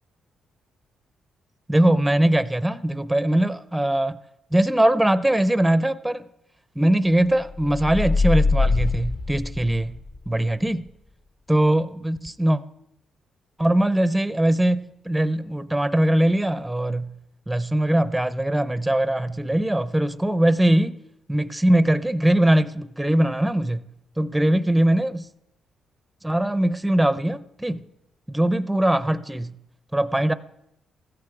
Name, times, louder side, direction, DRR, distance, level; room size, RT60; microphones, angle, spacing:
voice 1, 1.7-4.2 4.5-6.2 6.8-10.0 10.3-10.9 11.5-12.6 13.6-17.1 17.5-21.0 21.3-23.8 24.2-25.2 26.2-27.8 28.3-29.5 29.9-30.3, right 1 dB, 5° right, 0.6 m, -21 dB
sound 1, 7.5-10.2, left 3 dB, 40° left, 1.1 m, -23 dB
15.5 x 14.0 x 4.8 m
cardioid pair, 110°, 0 cm